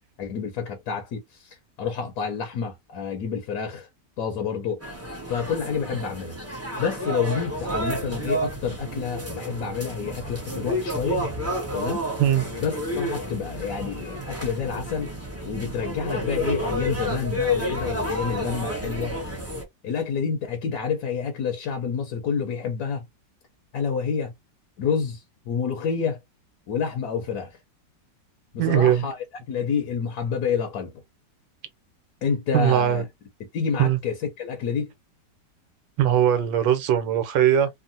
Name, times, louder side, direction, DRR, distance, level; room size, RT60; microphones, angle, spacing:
voice 1, 0.2-3.9 4.2-4.8 5.3-6.4 6.8-11.2 11.7-12.0 12.6-15.1 15.4-19.1 19.8-23.0 23.7-24.3 24.8-26.2 26.7-27.6 28.5-30.9 32.2-33.0 33.4-34.9, left 6 dB, 65° left, 1.2 m, -28 dB
sound 1, 4.8-19.6, equal, 15° right, 0.4 m, -30 dB
voice 2, 28.6-29.0 32.5-33.0 33.8-34.0 36.0-37.7, right 10 dB, 90° right, 1.4 m, -20 dB
3.6 x 2.0 x 2.6 m
omnidirectional pair, 1.9 m